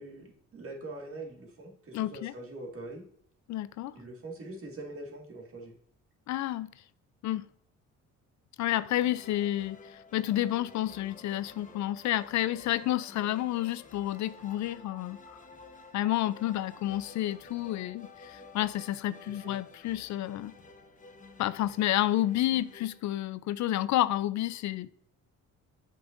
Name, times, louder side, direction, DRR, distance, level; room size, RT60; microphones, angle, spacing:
voice 1, 0.0-3.0 3.9-5.8 19.4-19.6, right 2 dB, 45° right, 2.0 m, -43 dB
voice 2, 1.9-2.3 3.5-3.9 6.3-6.7 7.2-7.5 8.6-15.4 15.9-20.5 21.4-24.9, left 14 dB, 65° left, 0.4 m, -30 dB
sound 1, 8.7-23.6, left 3 dB, 25° left, 1.1 m, -52 dB
7.9 x 5.6 x 2.6 m
cardioid pair, 90°, 30 cm